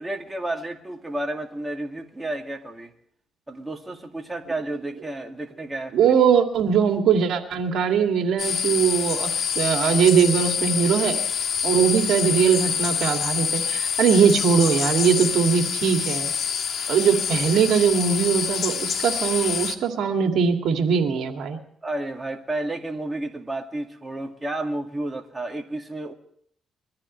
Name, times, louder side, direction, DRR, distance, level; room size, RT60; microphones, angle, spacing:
voice 1, 0.0-2.9 3.5-6.2 21.8-26.1, right 2 dB, 15° right, 3 dB, 2.1 m, -31 dB
voice 2, 5.9-11.2 11.6-16.3 16.9-21.6, right 7 dB, 75° right, 4 dB, 2.4 m, -21 dB
sound 1, 8.4-19.8, left 7 dB, 60° left, 1.6 m, -26 dB
23.0 x 14.5 x 3.2 m, 0.66 s
cardioid pair, 90°, 0 cm